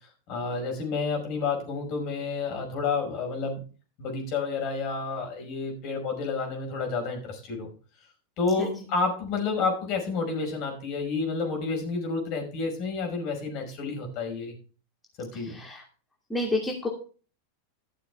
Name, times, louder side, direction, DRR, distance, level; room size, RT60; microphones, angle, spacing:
voice 1, 0.3-3.6 4.0-7.7 8.4-14.6 15.2-15.6, left 4 dB, 50° left, 3 dB, 5.3 m, -30 dB
voice 2, 15.4-15.8 16.3-16.9, left 1 dB, 10° left, -1 dB, 2.6 m, -29 dB
12.5 x 7.0 x 4.6 m, 0.38 s
hypercardioid pair, 100°, 0 cm